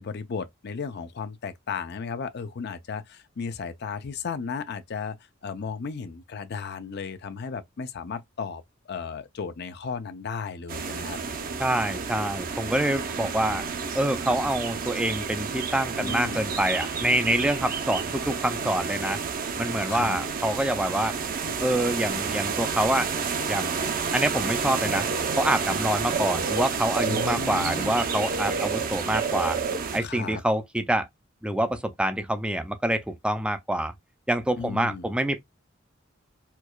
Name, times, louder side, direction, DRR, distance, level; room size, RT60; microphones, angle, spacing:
voice 1, 0.0-5.2 5.4-8.6 8.9-11.2 16.0-16.5 19.8-20.2 27.0-27.9 30.0-30.4 34.6-35.1, left 5 dB, 55° left, 0.5 m, -34 dB
sound 1, 10.7-30.0, right 5 dB, 45° right, 0.6 m, -30 dB
voice 2, 11.6-13.6 13.9-19.2 19.6-21.1 21.6-23.1 23.5-25.1 25.4-29.6 29.9-31.1 31.4-33.9 34.3-35.4, right 1 dB, 5° right, 0.4 m, -26 dB
4.5 x 2.4 x 2.3 m
head